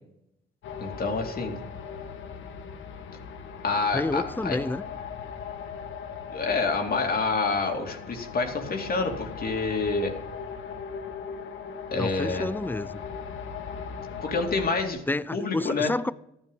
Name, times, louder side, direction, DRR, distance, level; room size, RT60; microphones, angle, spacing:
sound 1, 0.6-14.9, left 6 dB, 75° left, 1.8 m, -39 dB
voice 1, 0.8-1.6 3.6-4.6 6.3-10.1 11.9-12.5 14.2-15.0 15.3-15.9, left 4 dB, 50° left, 2.6 m, -27 dB
voice 2, 3.9-4.8 12.0-13.0 15.1-16.1, left 2 dB, 10° left, 0.6 m, -29 dB
14.5 x 10.5 x 5.4 m
cardioid pair, 90°, 20 cm